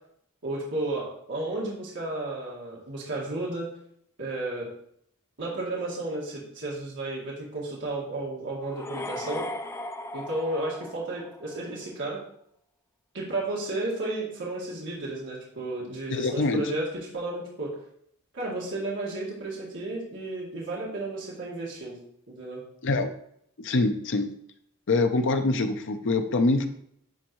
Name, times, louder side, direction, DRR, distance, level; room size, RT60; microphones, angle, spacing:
voice 1, 0.4-3.7 4.2-4.7 5.4-9.5 10.1-12.2 13.1-17.7 18.3-22.0 22.3-22.6, right 2 dB, 55° right, -5 dB, 1.9 m, -33 dB
sound 1, 8.6-11.7, left 1 dB, 10° left, 0.3 m, -37 dB
voice 2, 16.1-16.6 22.8-23.1 23.6-24.3 24.9-26.7, left 3 dB, 60° left, 8 dB, 0.6 m, -24 dB
10.5 x 3.5 x 3.1 m, 0.69 s
head